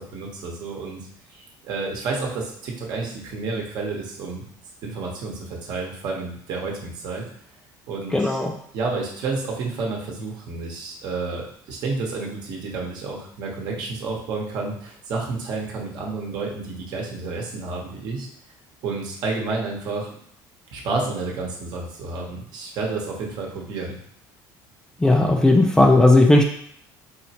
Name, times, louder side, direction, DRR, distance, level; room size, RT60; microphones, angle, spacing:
voice 1, 0.0-4.4 4.8-7.3 7.9-8.4 8.7-18.3 18.8-20.2 20.7-24.0, right 3 dB, 60° right, -1 dB, 1.0 m, -30 dB
voice 2, 8.1-8.5 25.0-26.4, left 2 dB, 10° left, 2 dB, 0.3 m, -15 dB
4.2 x 3.1 x 2.9 m, 0.64 s
cardioid pair, 135°, 8 cm